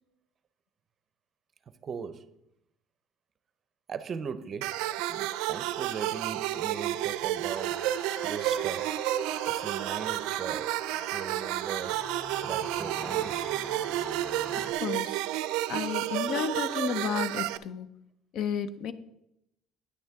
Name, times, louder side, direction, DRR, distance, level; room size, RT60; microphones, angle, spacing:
voice 1, 1.8-2.4 3.9-7.9 8.2-9.0 9.5-10.8 11.1-12.0 12.4-13.5, right 6 dB, 35° right, 0.6 m, -39 dB
sound 1, 4.6-17.6, right 14 dB, 90° right, 0.4 m, -31 dB
sound 2, 7.5-14.7, right 1 dB, 5° left, 1.6 m, -43 dB
voice 2, 14.6-15.2 15.7-17.9 18.3-18.9, left 6 dB, 60° left, 0.6 m, -32 dB
9.4 x 9.3 x 3.5 m
cardioid pair, 140°, 0 cm